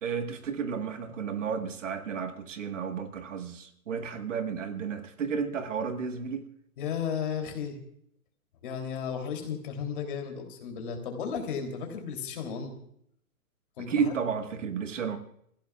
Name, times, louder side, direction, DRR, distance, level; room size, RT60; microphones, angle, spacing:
voice 1, 0.0-6.5 13.9-15.2, right 6 dB, 55° right, 7 dB, 1.7 m, -32 dB
voice 2, 6.8-7.8 8.6-12.7 13.8-14.1, left 7 dB, 35° left, 3 dB, 3.2 m, -34 dB
27.5 x 15.5 x 2.4 m, 0.70 s
hypercardioid pair, 170°, 44 cm